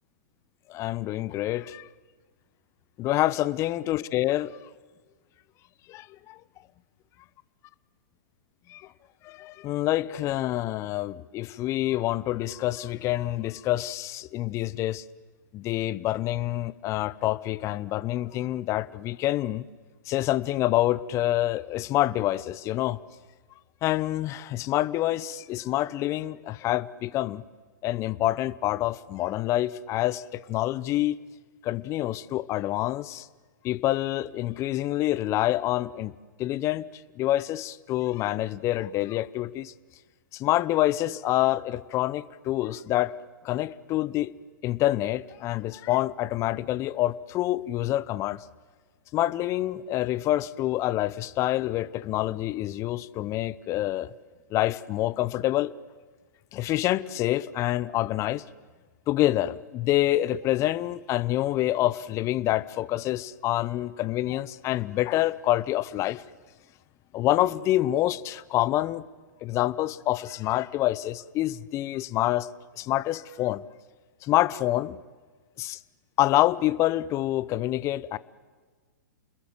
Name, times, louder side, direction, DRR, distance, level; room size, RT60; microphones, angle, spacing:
voice 1, 0.7-1.9 3.0-4.6 5.9-6.4 8.7-8.8 9.2-15.0 15.5-19.6 20.1-23.0 23.8-27.4 27.8-31.2 31.6-33.3 33.6-36.1 36.4-36.9 37.2-39.7 40.3-43.1 43.4-44.3 44.6-48.4 49.1-54.1 54.5-55.7 56.5-58.4 59.1-66.2 67.1-69.0 69.4-72.5 72.8-73.6 74.2-75.0 75.6-75.8 76.2-78.2, left 15 dB, 30° left, 19 dB, 0.8 m, -27 dB
29.5 x 21.5 x 7.8 m, 1.4 s
figure-of-eight pair, 110°, 10 cm